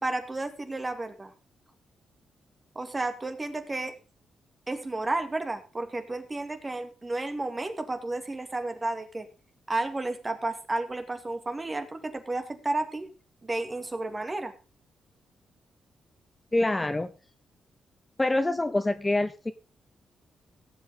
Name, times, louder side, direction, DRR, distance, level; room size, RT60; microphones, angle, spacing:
voice 1, 0.0-1.3 2.8-4.0 4.7-9.3 9.7-13.1 13.4-14.5, right 2 dB, 25° right, 7 dB, 2.2 m, -32 dB
voice 2, 16.5-17.1 18.2-19.5, left 2 dB, 20° left, 11 dB, 0.8 m, -25 dB
17.0 x 7.8 x 3.8 m, 0.33 s
cardioid pair, 75°, 0 cm